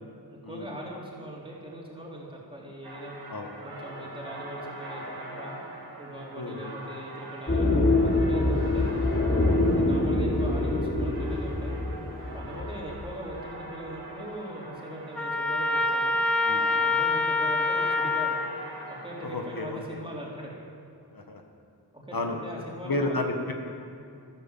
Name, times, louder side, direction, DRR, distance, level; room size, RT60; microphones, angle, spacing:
voice 1, 0.5-3.1 3.6-5.6 6.0-9.0 9.7-11.8 12.3-16.2 16.8-18.4 18.9-20.5 21.9-23.2, right 1 dB, 15° right, -4 dB, 3.6 m, -40 dB
sound 1, 2.8-19.6, right 1 dB, 90° right, 4.6 m, -43 dB
voice 2, 6.3-6.7 9.7-9.9 12.5-12.6 16.4-16.8 19.2-20.0 21.1-21.4 22.1-22.4 22.8-23.5, left 2 dB, 60° left, 3 dB, 1.6 m, -32 dB
sound 2, 7.5-13.0, left 2 dB, 30° left, 3.5 m, -25 dB
Trumpet, 15.2-18.5, left 3 dB, 5° left, 1.1 m, -25 dB
13.5 x 13.5 x 7.3 m, 2.5 s
wide cardioid pair, 75°, 40 cm